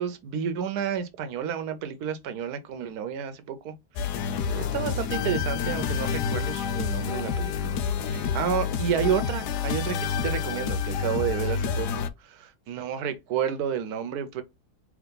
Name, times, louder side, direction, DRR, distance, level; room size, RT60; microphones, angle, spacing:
voice 1, 0.0-3.7 4.0-14.4, right 8 dB, 75° right, 1.2 m, -31 dB
sound 1, 4.0-12.1, left 6 dB, 85° left, 1.2 m, -28 dB
3.5 x 3.2 x 3.7 m
omnidirectional pair, 1.7 m